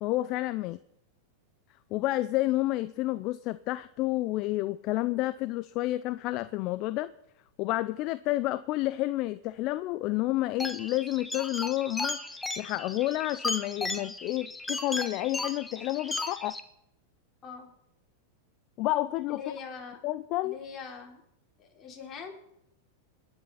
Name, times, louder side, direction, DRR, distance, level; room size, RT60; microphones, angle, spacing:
voice 1, 0.0-0.8 1.9-7.1 7.6-12.2 12.6-16.5 18.8-19.4 20.0-20.6, left 17 dB, 45° left, 0.5 m, -30 dB
sound 1, 10.6-16.6, left 2 dB, 10° left, 1.3 m, -35 dB
voice 2, 19.3-20.0 20.4-21.2 21.6-22.4, left 6 dB, 30° left, 4.2 m, -42 dB
27.5 x 10.5 x 4.2 m
hypercardioid pair, 105°, 0 cm